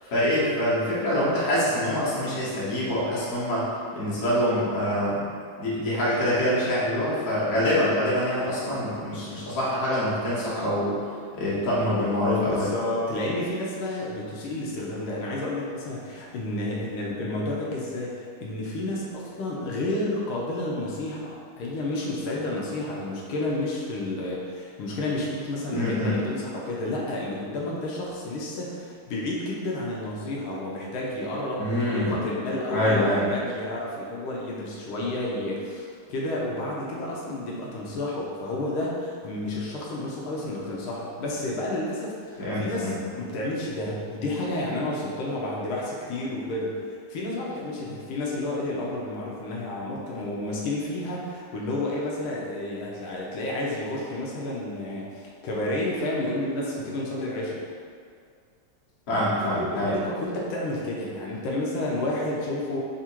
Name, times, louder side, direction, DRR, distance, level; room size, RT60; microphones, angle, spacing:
voice 1, 0.0-3.7 3.9-5.3 5.6-11.0 11.3-12.7 25.7-26.2 31.6-32.2 32.7-33.3 42.4-43.0 59.1-59.9, left 1 dB, 45° left, -9 dB, 1.3 m, -25 dB
voice 2, 12.4-57.6 59.6-62.8, left 1 dB, 80° left, -4 dB, 1.5 m, -31 dB
3.7 x 2.5 x 4.3 m, 2.2 s
omnidirectional pair, 2.4 m